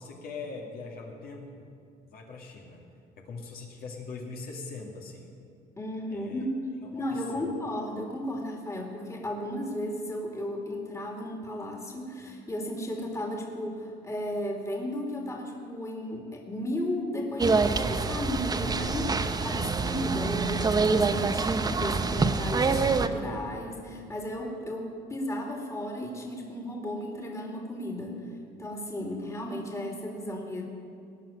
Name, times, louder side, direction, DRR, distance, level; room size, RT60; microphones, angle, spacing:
voice 1, 0.0-1.7 2.1-2.8 3.2-5.3 6.1-6.5 6.8-7.5, left 4 dB, 60° left, 0 dB, 2.4 m, -41 dB
voice 2, 5.8-6.6 6.9-28.3 28.6-30.6, left 1 dB, 15° left, 0 dB, 2.5 m, -34 dB
sound 1, 17.4-23.1, right 4 dB, 25° right, 0.8 m, -26 dB
18.5 x 6.3 x 9.9 m, 2.4 s
cardioid pair, 110°, 17 cm